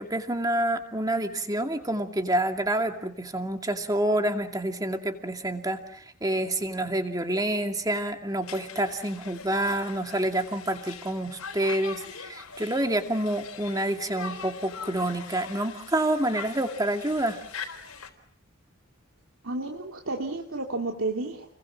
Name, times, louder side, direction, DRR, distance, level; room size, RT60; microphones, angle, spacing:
voice 1, 0.0-17.4, right 1 dB, 15° right, 5 dB, 2.4 m, -28 dB
Conversation, 8.4-18.1, left 6 dB, 85° left, 4.1 m, -42 dB
voice 2, 19.4-21.5, right 2 dB, 70° right, 2 dB, 2.8 m, -31 dB
30.0 x 22.5 x 7.5 m, 0.67 s
head